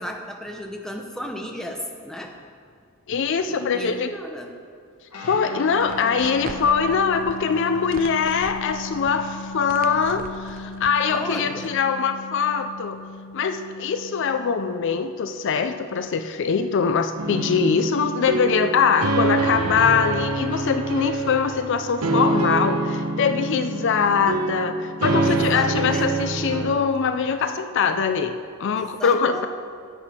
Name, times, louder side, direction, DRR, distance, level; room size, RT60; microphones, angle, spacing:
voice 1, 0.0-2.3 3.5-4.5 11.1-11.8 25.2-26.3 28.7-29.5, equal, ahead, 2 dB, 0.7 m, -34 dB
voice 2, 3.1-4.1 5.2-13.0 13.3-29.5, left 6 dB, 55° left, 9 dB, 0.4 m, -23 dB
Guitar, 5.1-15.0, left 3 dB, 85° left, 1.6 m, -37 dB
sound 1, 5.7-11.0, right 3 dB, 40° right, 0.5 m, -42 dB
sound 2, 17.2-26.8, right 2 dB, 80° right, 0.9 m, -25 dB
11.0 x 7.8 x 4.3 m, 2.1 s
head